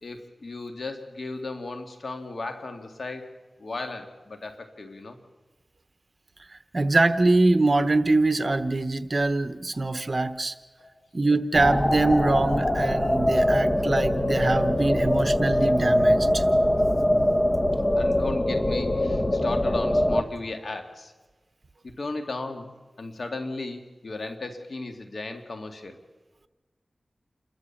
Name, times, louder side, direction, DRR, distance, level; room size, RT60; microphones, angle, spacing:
voice 1, 0.0-3.3 3.6-5.2 10.8-11.0 18.0-21.1 21.8-22.7 23.0-26.0, left 3 dB, 70° left, 6 dB, 2.1 m, -35 dB
voice 2, 6.7-10.5 11.1-16.4, right 2 dB, 50° right, 11 dB, 1.1 m, -23 dB
sound 1, 11.5-20.2, left 1 dB, 25° left, 1.3 m, -23 dB
29.0 x 13.5 x 7.2 m, 1.3 s
cardioid pair, 50°, 0 cm